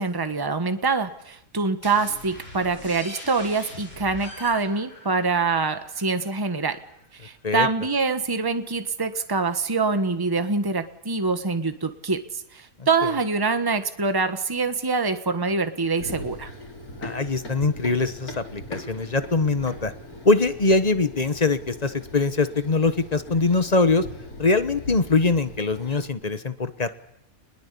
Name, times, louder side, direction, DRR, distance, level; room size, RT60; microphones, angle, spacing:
voice 1, 0.0-6.8 7.2-12.2 12.5-16.5, right 4 dB, 15° right, 9 dB, 1.3 m, -25 dB
sound 1, 1.8-7.3, left 1 dB, 70° left, 6.2 m, -43 dB
Run, 16.0-26.1, left 1 dB, 90° left, 4.3 m, -40 dB
voice 2, 17.0-19.9 20.2-24.0 24.4-26.9, left 3 dB, 30° left, 12 dB, 1.1 m, -22 dB
28.0 x 21.0 x 8.4 m, 0.77 s
omnidirectional pair, 1.5 m